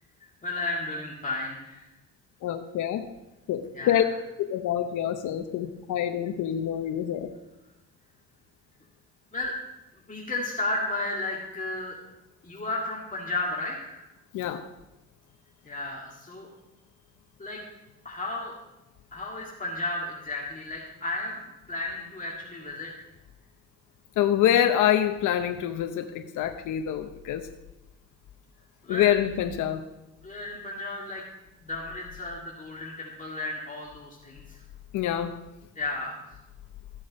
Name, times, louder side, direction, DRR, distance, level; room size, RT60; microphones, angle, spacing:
voice 1, 0.4-1.8 3.7-4.1 9.3-9.5 10.1-12.0 12.4-14.0 15.6-16.5 17.4-17.6 18.0-18.5 19.1-21.4 21.7-22.9 28.8-29.1 30.2-31.2 31.6-34.6 35.8-36.2, left 2 dB, 25° left, -4 dB, 2.3 m, -33 dB
voice 2, 2.4-3.1 3.5-4.0 4.4-7.3 14.3-14.7 24.2-27.5 28.9-29.8 34.9-35.4, left 10 dB, 80° left, 7 dB, 0.8 m, -26 dB
14.5 x 7.6 x 5.3 m, 0.99 s
cardioid pair, 90°, 30 cm